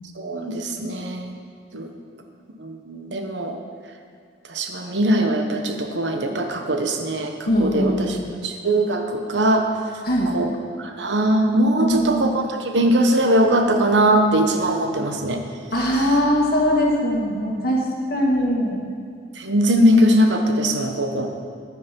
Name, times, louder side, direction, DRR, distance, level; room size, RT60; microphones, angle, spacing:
voice 1, 0.2-1.3 1.7-1.9 2.6-3.6 4.5-8.2 8.4-9.7 10.3-10.5 10.8-15.4 19.4-21.3, right 1 dB, 85° right, 4 dB, 1.2 m, -20 dB
voice 2, 7.5-8.3 10.0-10.3 11.8-12.3 15.7-17.8 18.1-18.8, equal, 60° left, -2 dB, 2.2 m, -21 dB
11.0 x 9.4 x 5.4 m, 2.3 s
head